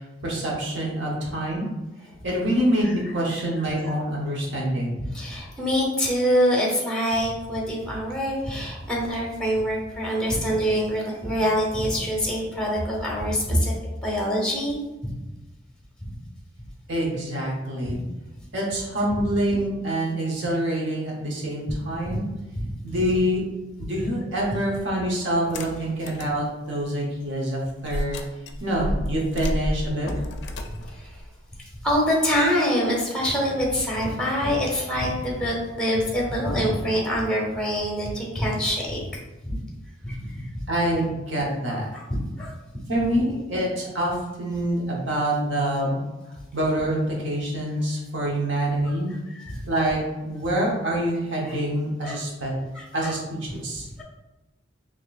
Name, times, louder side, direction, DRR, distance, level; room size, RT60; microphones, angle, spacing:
voice 1, 0.2-1.7 2.2-5.0 13.5-13.6 16.9-18.0 18.5-22.3 22.8-23.4 23.8-28.2 28.6-30.1 40.7-41.9 42.9-46.0 46.5-49.1 49.7-52.6 52.9-53.9, right 1 dB, 70° right, -3 dB, 1.0 m, -26 dB
voice 2, 5.0-13.7 14.0-14.8 15.0-15.1 16.0-16.1 17.8-17.9 19.1-19.2 22.0-22.2 22.5-22.7 30.9-31.2 31.8-39.0 39.4-39.6 40.0-40.7 41.9-42.5 48.9-49.0 49.3-49.6 51.4-51.5 52.0-52.2 52.7-53.1, equal, 5° left, -3 dB, 0.8 m, -25 dB
sound 1, 25.4-26.4 26.8-26.9 27.8-32.1, left 1 dB, 65° left, 0.4 m, -31 dB
4.3 x 2.9 x 2.4 m, 1.1 s
head